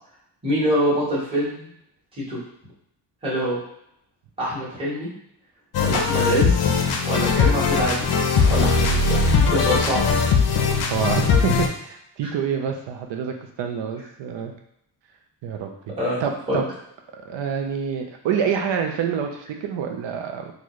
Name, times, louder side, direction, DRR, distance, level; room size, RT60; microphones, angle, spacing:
voice 1, 0.4-1.7 2.3-2.4 3.2-3.6 4.4-5.1 5.8-6.7 7.1-8.2 8.5-9.2 9.5-10.0 12.2-12.3 16.0-16.6, equal, 10° right, -10 dB, 1.4 m, -25 dB
sound 1, 5.7-11.7, left 5 dB, 55° left, 0.6 m, -20 dB
voice 2, 10.9-14.5 15.4-15.7 16.2-16.7 17.2-20.5, right 7 dB, 75° right, 4 dB, 0.7 m, -27 dB
4.0 x 2.4 x 3.1 m, 0.76 s
cardioid pair, 145°, 45 cm